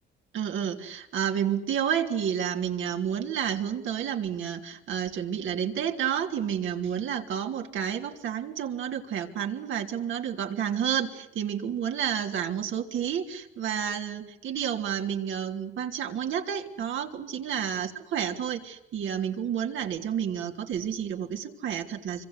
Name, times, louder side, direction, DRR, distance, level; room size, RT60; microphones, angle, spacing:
voice 1, 0.3-22.3, right 8 dB, 75° right, 4 dB, 3.2 m, -30 dB
26.5 x 25.5 x 8.2 m, 0.80 s
cardioid pair, 90°, 20 cm